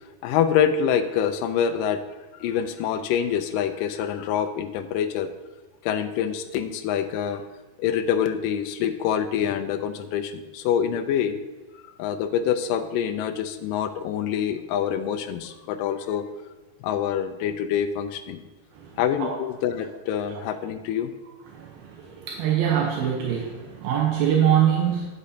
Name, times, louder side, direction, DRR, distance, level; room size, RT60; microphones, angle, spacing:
voice 1, 0.2-2.0 2.4-5.3 5.8-7.4 7.8-11.4 12.0-16.3 16.8-18.4 19.0-21.1, left 8 dB, 80° left, 9 dB, 2.1 m, -26 dB
voice 2, 18.7-19.3 20.3-20.4 21.5-25.1, right 9 dB, 80° right, -1 dB, 2.8 m, -24 dB
9.2 x 8.3 x 2.8 m, 1.2 s
omnidirectional pair, 4.2 m